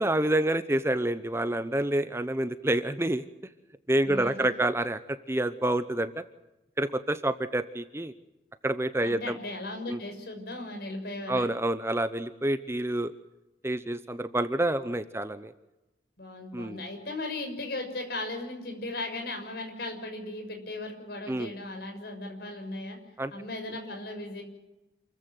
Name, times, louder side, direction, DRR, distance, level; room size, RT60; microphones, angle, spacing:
voice 1, 0.0-3.2 3.9-6.2 6.8-8.1 8.6-9.4 9.9-10.0 11.3-13.1 13.6-15.5 16.5-16.8 21.3-21.5 23.2-23.3, right 1 dB, 15° right, 12 dB, 0.8 m, -28 dB
voice 2, 4.0-4.5 9.0-11.5 16.2-23.0 23.3-24.4, left 2 dB, 60° left, 3 dB, 6.4 m, -37 dB
28.0 x 15.0 x 9.3 m, 1.0 s
head